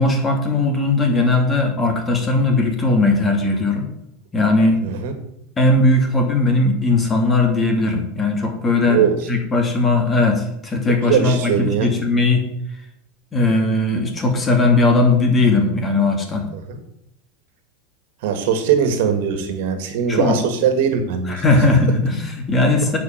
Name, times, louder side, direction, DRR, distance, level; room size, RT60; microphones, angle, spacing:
voice 1, 0.0-3.9 4.3-4.8 5.6-12.4 13.3-16.5 20.1-20.4 21.3-23.0, left 2 dB, 20° left, 3 dB, 2.7 m, -18 dB
voice 2, 4.8-5.1 8.9-9.1 11.0-11.9 16.7-16.8 18.2-21.4, right 7 dB, 70° right, 7 dB, 2.0 m, -20 dB
9.2 x 5.8 x 7.3 m, 0.80 s
supercardioid pair, 125°, 0 cm